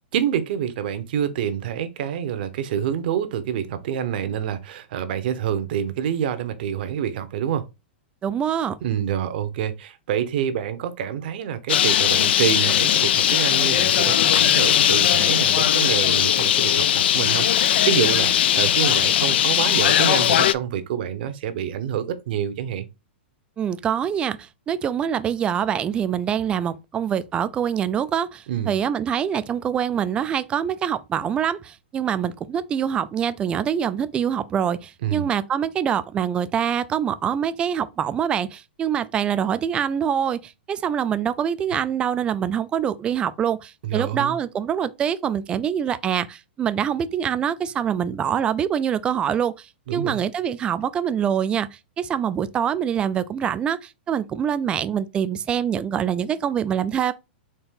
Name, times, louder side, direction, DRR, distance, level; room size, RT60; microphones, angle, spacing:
voice 1, 0.1-7.6 8.8-22.9 28.5-28.7 35.0-35.3 43.8-44.4 49.9-50.2, right 9 dB, 55° right, 0.8 m, -27 dB
voice 2, 8.2-8.8 23.6-57.1, right 8 dB, 15° right, 0.3 m, -25 dB
Bird, 11.7-20.5, left 11 dB, 65° left, 0.4 m, -19 dB
4.3 x 2.8 x 3.7 m
hypercardioid pair, 145°, 6 cm